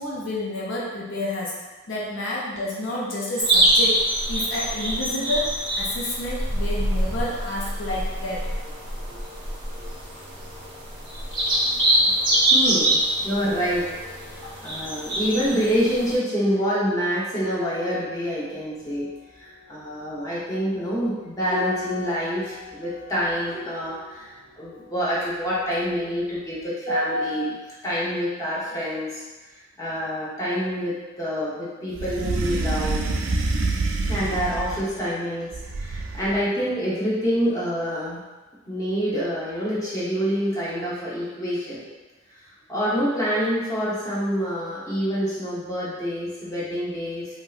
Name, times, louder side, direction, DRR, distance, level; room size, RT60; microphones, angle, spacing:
voice 1, 0.0-1.5 1.9-4.0 4.3-8.5, left 1 dB, 70° left, -4 dB, 0.5 m, -29 dB
sound 1, 3.4-16.2, right 1 dB, 25° right, 0.7 m, -24 dB
voice 2, 12.5-13.8 14.3-19.1 19.4-27.6 27.8-29.2 29.8-33.0 34.0-35.5 35.8-38.2 38.7-41.8 42.7-47.3, equal, 15° left, -9 dB, 0.8 m, -26 dB
sound 2, 17.5-26.2 26.5-26.7, left 5 dB, 85° left, 0.9 m, -39 dB
sound 3, 31.9-35.0 35.5-36.4, right 3 dB, 65° right, 0.3 m, -26 dB
3.1 x 2.6 x 2.4 m, 1.2 s
head